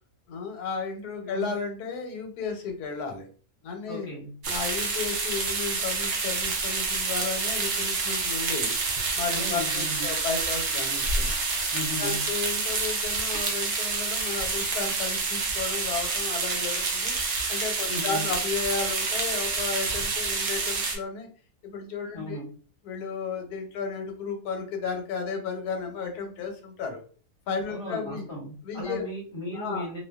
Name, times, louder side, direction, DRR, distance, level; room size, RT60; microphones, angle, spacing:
voice 1, 0.3-3.3 3.6-4.1 4.5-8.8 9.1-11.3 12.0-21.3 21.6-22.4 22.8-27.0 27.5-28.2 28.6-29.1 29.5-29.9, left 5 dB, 85° left, 4 dB, 1.2 m, -33 dB
voice 2, 1.2-1.5 3.9-4.3 9.3-10.0 11.7-12.3 17.9-18.3 22.1-22.5 27.7-30.0, equal, 45° left, -4 dB, 1.1 m, -36 dB
sound 1, 4.4-21.0, right 4 dB, 70° right, 0.6 m, -28 dB
2.6 x 2.2 x 2.2 m, 0.41 s
omnidirectional pair, 1.6 m